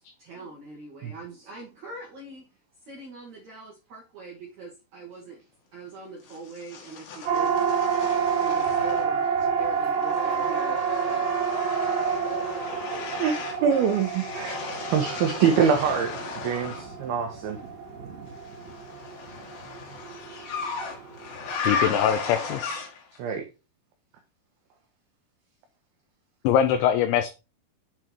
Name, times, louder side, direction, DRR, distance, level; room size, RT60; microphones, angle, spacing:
voice 1, 0.2-2.4 2.8-5.4 5.7-7.6 8.2-11.3 14.7-14.9 16.7-18.4, right 3 dB, 70° right, -2 dB, 1.8 m, -43 dB
sound 1, 6.3-9.3 9.6-16.9 18.4-23.2, left 4 dB, 65° left, 3.0 m, -35 dB
Siren, 7.3-21.6, right 6 dB, 55° right, 2.3 m, -29 dB
voice 2, 12.9-14.6 14.9-17.6 23.2-23.4, right 7 dB, 90° right, 4 dB, 2.1 m, -25 dB
voice 3, 21.6-22.9 26.4-27.3, left 9 dB, 80° left, 7 dB, 2.9 m, -23 dB
7.9 x 3.8 x 4.4 m, 0.29 s
omnidirectional pair, 5.6 m